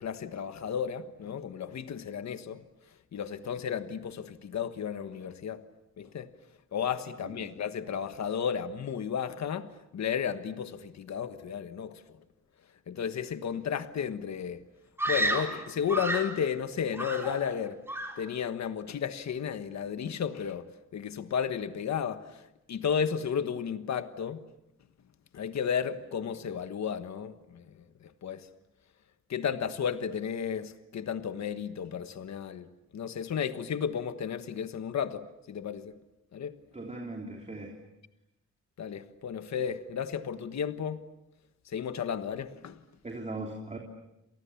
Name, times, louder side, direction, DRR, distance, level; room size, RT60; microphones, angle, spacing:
voice 1, 0.0-2.6 3.1-5.6 6.0-6.3 6.7-12.0 12.9-14.6 15.1-17.8 18.2-22.2 22.7-24.4 25.3-27.6 28.0-28.5 29.3-32.7 32.9-36.0 36.3-36.5 38.8-41.0 41.7-42.8, left 7 dB, 65° left, 1.4 m, -33 dB
voice 2, 7.2-7.5 36.7-37.7 43.0-43.8, right 2 dB, 25° right, 3.4 m, -39 dB
Screaming, 15.0-16.4 16.9-17.6 17.9-18.3, right 1 dB, 10° right, 3.9 m, -31 dB
29.5 x 27.5 x 7.2 m
wide cardioid pair, 160°, 29 cm